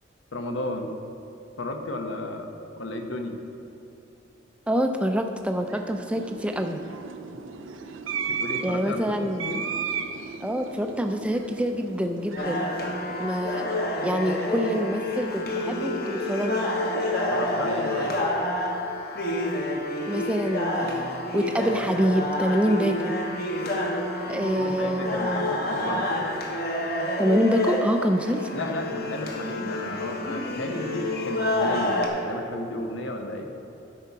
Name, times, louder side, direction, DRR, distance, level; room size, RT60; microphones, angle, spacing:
voice 1, 0.3-0.9 1.6-2.5 2.8-3.4 8.3-9.6 17.3-18.1 24.2-26.1 28.5-33.5, left 1 dB, 85° left, 4 dB, 1.0 m, -33 dB
voice 2, 4.7-6.8 8.6-9.5 10.4-12.7 13.2-13.6 14.0-16.7 20.1-23.2 24.3-25.5 27.2-28.5, equal, 5° right, 5 dB, 0.4 m, -26 dB
sound 1, 5.4-13.9, right 6 dB, 90° right, 0.5 m, -35 dB
sound 2, 12.4-32.1, left 1 dB, 50° left, 1.2 m, -28 dB
12.0 x 5.6 x 4.7 m, 2.9 s
head